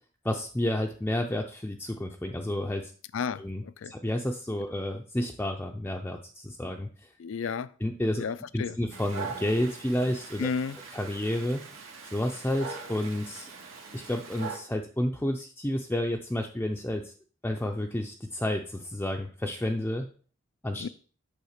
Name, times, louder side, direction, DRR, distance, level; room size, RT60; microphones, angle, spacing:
voice 1, 0.2-2.9 3.4-7.1 7.8-8.2 8.5-10.5 10.9-11.6 12.0-13.5 13.9-17.1 17.4-20.1 20.6-20.8, left 1 dB, 10° left, 0.5 m, -30 dB
voice 2, 3.1-3.9 7.2-7.7 8.2-8.8 10.4-10.8 20.8-20.9, left 6 dB, 70° left, 0.4 m, -32 dB
Dog, 8.9-14.6, right 4 dB, 90° right, 1.7 m, -42 dB
8.5 x 3.5 x 6.5 m
head